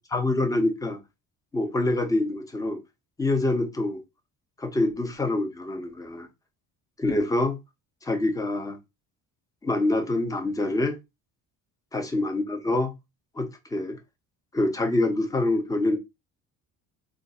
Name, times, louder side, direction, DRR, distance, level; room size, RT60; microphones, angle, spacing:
voice 1, 0.1-1.0 1.5-2.8 3.2-4.0 4.6-6.3 7.0-7.6 8.0-8.8 9.6-11.0 11.9-12.9 13.4-14.0 14.5-16.0, left 2 dB, 10° left, 0.6 m, -25 dB
2.5 x 2.4 x 4.0 m
cardioid pair, 150°, 35 cm